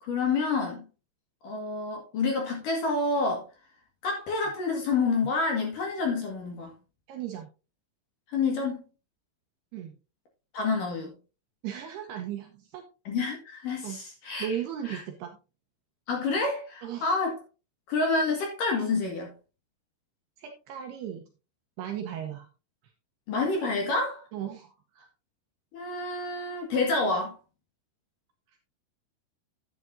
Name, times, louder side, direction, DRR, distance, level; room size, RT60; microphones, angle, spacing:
voice 1, 0.0-0.8 1.4-3.5 4.0-6.7 8.3-8.8 10.5-11.1 13.0-14.6 14.8-15.0 16.1-17.4 17.9-19.3 23.3-24.2 25.7-27.4, left 3 dB, 55° left, 2.7 m, -28 dB
voice 2, 7.1-7.5 9.7-9.9 11.6-12.8 13.8-14.0 14.4-15.3 16.8-17.1 20.4-21.2 21.8-22.5 24.3-25.1, right 9 dB, 75° right, 2.5 m, -36 dB
11.0 x 9.8 x 2.6 m
omnidirectional pair, 5.7 m